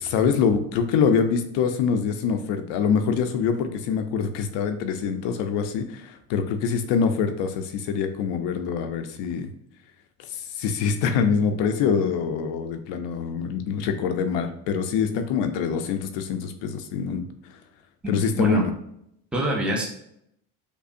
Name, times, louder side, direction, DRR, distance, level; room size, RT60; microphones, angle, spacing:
voice 1, 0.0-9.5 10.6-17.2 18.1-18.7, left 6 dB, 75° left, 8 dB, 0.6 m, -25 dB
voice 2, 18.0-18.6 19.3-19.8, equal, 5° right, -1 dB, 0.5 m, -24 dB
5.2 x 2.1 x 2.5 m, 0.74 s
cardioid pair, 140°, 42 cm